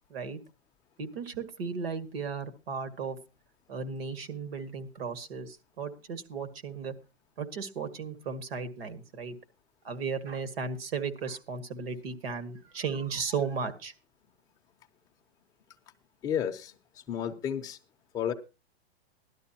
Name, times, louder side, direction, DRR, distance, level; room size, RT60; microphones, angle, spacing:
voice 1, 1.0-3.2 3.7-6.9 7.4-9.4 9.8-13.9, right 5 dB, 65° right, 10 dB, 2.0 m, -35 dB
voice 2, 16.2-16.7 17.1-17.8 18.1-18.3, left 9 dB, 10° left, 2 dB, 0.6 m, -31 dB
17.5 x 12.0 x 2.8 m, 0.29 s
supercardioid pair, 170°, 32 cm